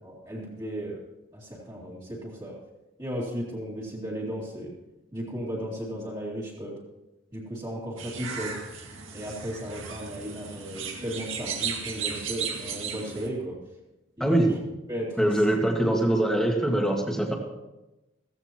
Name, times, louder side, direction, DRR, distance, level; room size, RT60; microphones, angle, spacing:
voice 1, 0.0-1.0 1.3-2.6 3.0-4.7 5.1-6.8 7.3-8.6 9.1-13.6 14.2-14.5 14.9-15.3, equal, 20° right, -7 dB, 2.5 m, -35 dB
sound 1, 8.0-13.3, right 6 dB, 85° right, 2.0 m, -35 dB
voice 2, 14.2-14.5 15.2-17.3, right 1 dB, 5° left, 0 dB, 1.8 m, -23 dB
16.0 x 15.0 x 3.0 m, 0.99 s
head